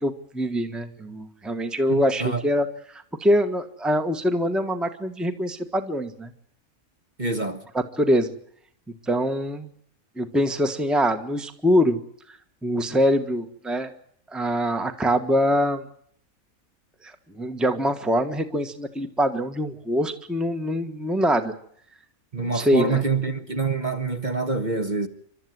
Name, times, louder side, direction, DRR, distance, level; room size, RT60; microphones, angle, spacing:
voice 1, 0.0-6.3 7.7-8.3 9.1-9.7 10.2-12.0 12.3-13.9 14.3-15.8 17.0-21.5 22.4-23.0, equal, ahead, 1.3 m, -24 dB
voice 2, 1.9-2.4 7.2-7.6 22.3-25.1, right 4 dB, 35° right, 1.5 m, -26 dB
28.5 x 13.0 x 9.5 m
omnidirectional pair, 1.5 m